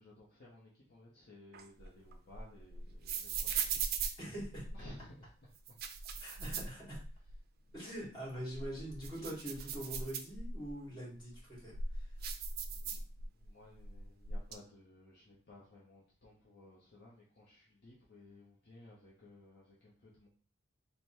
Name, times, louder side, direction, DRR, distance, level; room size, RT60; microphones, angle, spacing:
voice 1, 0.0-3.7 4.7-5.8 6.1-6.5 6.9-8.0 12.2-12.4 12.8-20.3, left 1 dB, 50° left, -5 dB, 0.7 m, -58 dB
sound 1, 1.5-5.0 5.6-7.4 7.7-7.8 8.3-10.7 11.3-13.5 13.7-14.5, right 5 dB, 45° right, 0.4 m, -40 dB
voice 2, 4.2-4.6 6.2-7.0 7.7-12.1, right 1 dB, 20° left, -5 dB, 1.9 m, -44 dB
3.4 x 2.2 x 4.3 m, 0.41 s
head